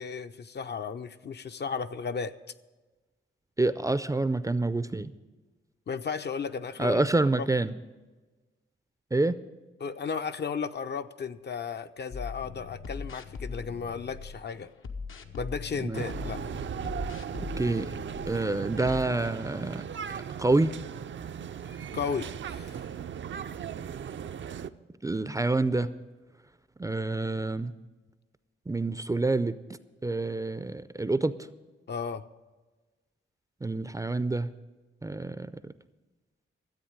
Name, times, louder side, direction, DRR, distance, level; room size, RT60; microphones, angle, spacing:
voice 1, 0.0-2.4 5.9-7.0 7.4-7.5 9.8-14.7 15.4-16.4 21.9-22.9 31.9-32.2, left 6 dB, 55° left, 9 dB, 0.6 m, -34 dB
voice 2, 3.6-5.1 6.8-7.7 9.1-9.4 15.8-16.0 17.6-17.9 18.3-19.8 20.1-20.7 25.0-25.9 26.8-27.7 28.7-29.6 30.0-31.5 33.6-34.5 35.0-35.7, right 2 dB, 15° right, 14 dB, 0.4 m, -27 dB
sound 1, 12.1-14.4 14.8-18.4 18.8-19.0, left 4 dB, 80° left, 1.0 m, -40 dB
sound 2, 15.9-24.7, right 8 dB, 65° right, 0.5 m, -37 dB
13.0 x 8.3 x 8.7 m, 1.2 s
wide cardioid pair, 140°, 21 cm